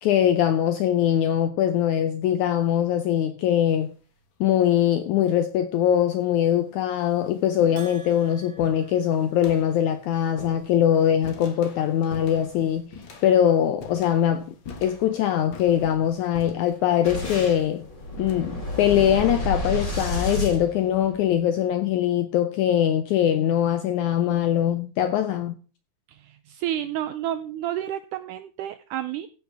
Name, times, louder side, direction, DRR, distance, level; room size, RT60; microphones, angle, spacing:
voice 1, 0.0-3.9 4.4-14.5 14.8-17.8 18.2-25.5, left 10 dB, 75° left, 1.8 m, -22 dB
sound 1, 3.8-4.2 5.2-5.3 6.1-6.2 6.6-20.1, left 4 dB, 50° left, 1.6 m, -45 dB
Bell, 7.8-9.9, right 4 dB, 50° right, 3.4 m, -49 dB
Boom, 17.0-21.4, left 1 dB, 20° left, 3.1 m, -30 dB
voice 2, 26.1-29.3, right 12 dB, 80° right, 1.9 m, -30 dB
15.5 x 5.9 x 4.7 m
omnidirectional pair, 4.1 m